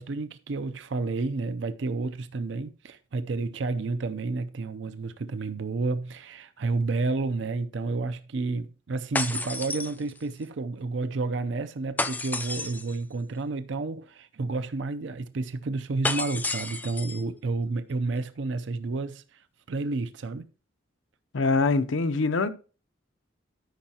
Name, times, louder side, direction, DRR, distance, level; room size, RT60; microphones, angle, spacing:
voice 1, 0.0-19.4 19.7-20.5, right 3 dB, 65° right, 0.5 m, -30 dB
sound 1, 9.2-10.4 12.0-13.0 16.0-17.2, left 3 dB, 10° left, 0.3 m, -31 dB
voice 2, 21.3-22.5, left 3 dB, 80° left, 0.6 m, -24 dB
13.0 x 5.5 x 2.8 m
head